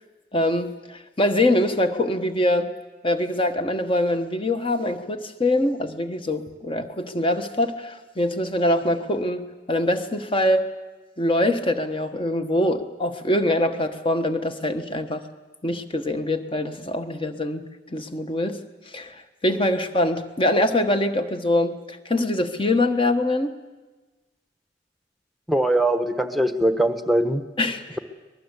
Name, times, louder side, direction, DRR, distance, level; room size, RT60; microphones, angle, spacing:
voice 1, 0.3-2.7 3.0-10.7 11.2-15.2 15.6-17.6 17.9-18.6 18.9-23.5 27.6-27.9, left 1 dB, 30° left, 8 dB, 1.3 m, -23 dB
voice 2, 25.5-27.4, right 1 dB, ahead, 8 dB, 1.2 m, -21 dB
23.5 x 20.5 x 8.3 m, 1.2 s
head